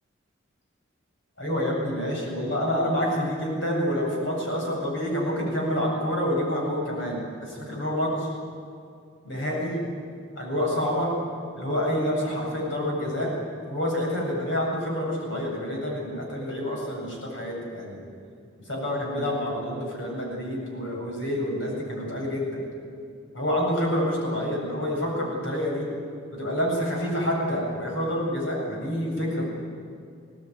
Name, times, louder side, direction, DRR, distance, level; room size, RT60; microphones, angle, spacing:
voice 1, 1.4-8.3 9.2-9.8 10.4-11.2 11.5-13.3 13.7-18.0 18.7-22.6 23.3-25.9 26.3-29.4, equal, 65° left, -2 dB, 7.9 m, -28 dB
21.0 x 18.5 x 9.6 m, 2.4 s
head